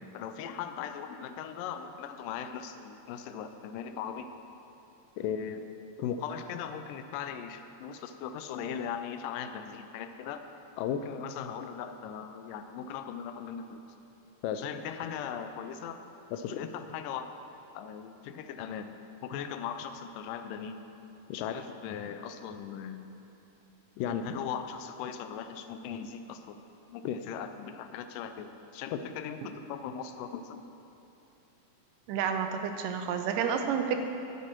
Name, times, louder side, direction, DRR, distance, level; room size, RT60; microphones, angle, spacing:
voice 1, 0.1-4.3 5.2-5.6 6.0-10.5 10.8-13.8 14.4-16.0 16.3-17.3 17.8-18.9 19.2-20.8 21.3-23.1 24.0-26.6 26.9-30.6, left 8 dB, 85° left, 9 dB, 2.2 m, -38 dB
voice 2, 32.1-34.0, right 7 dB, 85° right, 6 dB, 2.3 m, -30 dB
11.0 x 9.6 x 4.5 m, 2.9 s
omnidirectional pair, 3.8 m